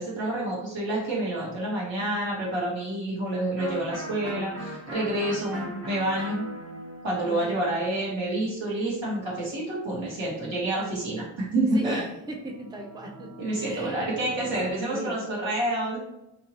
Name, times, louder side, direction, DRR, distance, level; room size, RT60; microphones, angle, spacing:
voice 1, 0.0-6.5 7.0-12.0 13.4-16.0, right 1 dB, 70° right, -5 dB, 1.4 m, -28 dB
Electric guitar, 3.6-9.2, right 1 dB, 30° right, 0.8 m, -39 dB
voice 2, 11.7-13.3 13.5-14.2 14.7-15.2, right 1 dB, 10° right, 1 dB, 0.5 m, -37 dB
sound 1, 12.2-14.7, right 1 dB, 55° right, 1.0 m, -46 dB
2.8 x 2.6 x 2.9 m, 0.86 s
cardioid pair, 45°, 46 cm